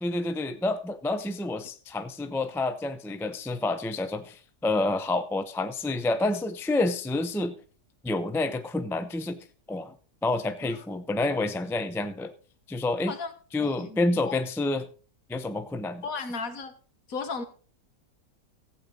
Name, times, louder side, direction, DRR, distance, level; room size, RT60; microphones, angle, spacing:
voice 1, 0.0-7.5 8.0-9.4 9.7-9.9 10.2-12.3 12.7-13.1 13.5-14.9 15.3-16.1, left 2 dB, 5° left, 0.3 m, -28 dB
voice 2, 13.6-14.3 16.0-16.7 17.1-17.4, left 4 dB, 70° left, 1.7 m, -35 dB
15.5 x 8.5 x 3.9 m
omnidirectional pair, 1.6 m